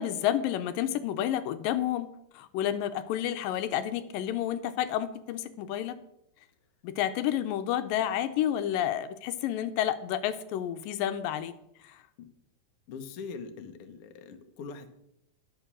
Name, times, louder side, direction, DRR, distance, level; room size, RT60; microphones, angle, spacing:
voice 1, 0.0-2.1 2.3-5.9 6.8-11.5, left 11 dB, 80° left, 10 dB, 2.3 m, -30 dB
voice 2, 12.9-14.9, left 5 dB, 65° left, 6 dB, 1.4 m, -42 dB
10.5 x 7.1 x 6.1 m, 0.79 s
omnidirectional pair, 4.0 m